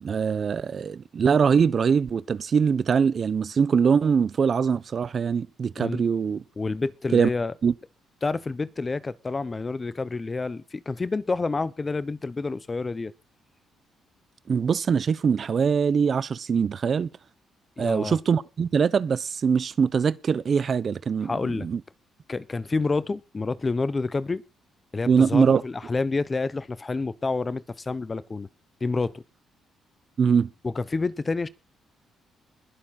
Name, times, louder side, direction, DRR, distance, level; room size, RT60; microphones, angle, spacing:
voice 1, 0.0-6.4 7.1-7.3 7.6-7.7 14.5-17.1 17.8-21.8 25.1-25.6 30.2-30.5, right 6 dB, 45° right, 0.7 m, -22 dB
voice 2, 6.6-7.5 8.2-13.1 17.8-18.2 21.2-21.7 22.3-24.4 24.9-28.5 28.8-29.2 30.6-31.5, left 3 dB, 25° left, 0.9 m, -28 dB
21.5 x 7.2 x 4.3 m
cardioid pair, 90°, 0 cm